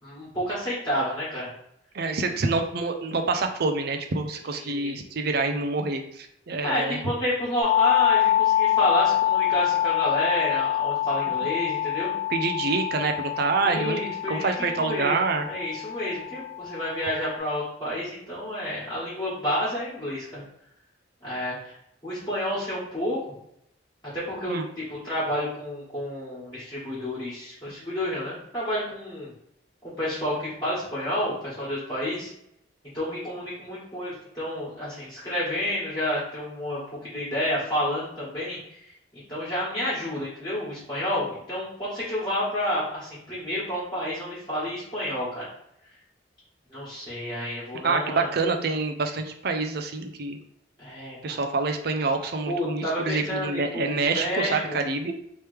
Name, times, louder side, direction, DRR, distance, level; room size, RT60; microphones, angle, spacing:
voice 1, 0.0-1.5 4.5-4.9 6.6-12.1 13.6-15.2 15.4-20.4 21.2-21.7 22.0-23.3 24.1-29.3 29.8-32.3 32.9-38.9 39.3-45.5 46.7-48.3 50.8-51.4 52.5-54.8, equal, 20° left, -11 dB, 1.4 m, -30 dB
voice 2, 1.9-7.0 12.3-14.0 14.3-15.5 24.5-24.6 47.8-50.4 51.2-55.1, right 3 dB, 50° right, 5 dB, 0.4 m, -27 dB
sound 1, 7.6-17.4, left 12 dB, 5° right, 0.6 m, -25 dB
3.2 x 3.0 x 3.3 m, 0.75 s
head